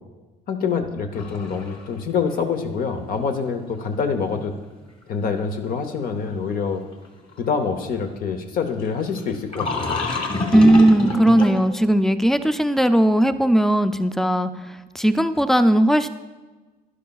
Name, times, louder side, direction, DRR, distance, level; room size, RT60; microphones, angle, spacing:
voice 1, 0.5-4.5 5.1-6.8 7.4-10.1, left 5 dB, 60° left, 6 dB, 0.7 m, -26 dB
sound 1, 1.1-2.0 2.3-2.4 5.1-5.2 7.0-7.1 7.3-7.4 9.2-9.3 9.5-11.7, left 1 dB, 35° left, 1.5 m, -26 dB
voice 2, 10.5-14.5 14.9-16.1, right 1 dB, ahead, 10 dB, 0.4 m, -17 dB
11.0 x 11.0 x 2.3 m, 1.2 s
cardioid pair, 110°, 17 cm